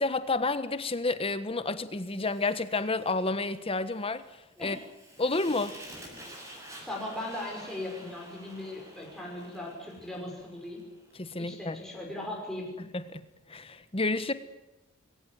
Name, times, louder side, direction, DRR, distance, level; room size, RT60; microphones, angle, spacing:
voice 1, 0.0-4.2 4.6-4.8 5.2-5.8 11.2-11.8 12.9-13.2 13.5-14.3, left 3 dB, 30° left, 12 dB, 1.4 m, -30 dB
Fire, 2.0-11.2, right 1 dB, 15° right, 7.5 m, -50 dB
voice 2, 6.8-10.8 11.4-12.7, left 1 dB, ahead, -2 dB, 5.8 m, -38 dB
21.5 x 18.0 x 9.5 m, 0.98 s
head